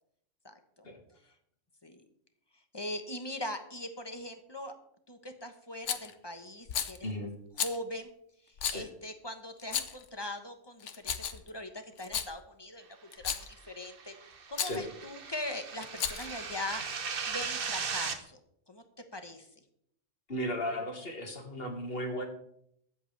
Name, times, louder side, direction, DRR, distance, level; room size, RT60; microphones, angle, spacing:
voice 1, 0.4-0.9 1.8-2.0 2.7-4.7 5.1-7.1 7.6-8.1 8.7-12.9 13.2-14.1 14.5-16.8 17.3-18.4 18.7-18.8 19.1-19.5, left 1 dB, 20° left, 6 dB, 1.1 m, -41 dB
Rattle, 5.9-6.1 6.7-7.0 7.6-7.8 8.6-8.8 9.6-10.1 10.8-11.5 12.0-12.3 13.1-13.5 14.5-14.8 15.8-16.4, left 8 dB, 70° left, 1.2 m, -33 dB
sound 1, 13.7-18.2, right 5 dB, 50° right, 1.1 m, -38 dB
voice 2, 20.3-22.3, equal, 50° left, 3 dB, 2.2 m, -35 dB
22.5 x 8.1 x 3.4 m, 0.73 s
omnidirectional pair, 1.3 m